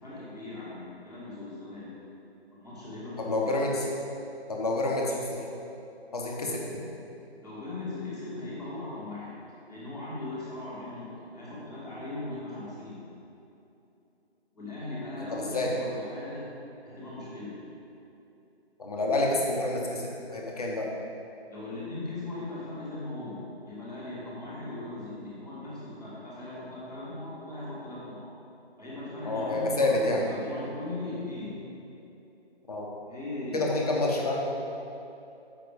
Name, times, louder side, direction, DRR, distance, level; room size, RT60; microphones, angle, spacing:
voice 1, 0.0-1.9 2.5-3.5 7.4-13.0 14.5-16.5 16.8-17.6 21.5-28.3 28.8-31.6 33.0-33.6, left 2 dB, 5° left, -21 dB, 1.1 m, -38 dB
voice 2, 3.2-3.9 4.5-5.4 6.1-6.6 15.2-15.7 18.8-20.9 29.2-30.2 32.7-32.9 33.5-34.4, left 2 dB, 35° left, -1 dB, 1.1 m, -28 dB
6.8 x 5.8 x 5.2 m, 2.8 s
figure-of-eight pair, 160°, 33 cm